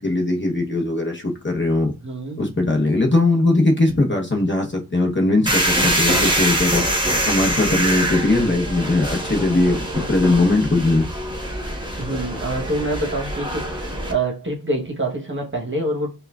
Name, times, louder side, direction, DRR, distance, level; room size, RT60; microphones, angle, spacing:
voice 1, 0.0-1.9 2.4-6.8 7.3-11.1, left 2 dB, 30° left, 0.9 m, -20 dB
voice 2, 2.0-2.5 12.0-16.1, right 1 dB, 30° right, 1.1 m, -26 dB
sound 1, 5.5-14.1, right 1 dB, 15° right, 1.1 m, -24 dB
5.5 x 2.3 x 2.3 m
wide cardioid pair, 60°, 37 cm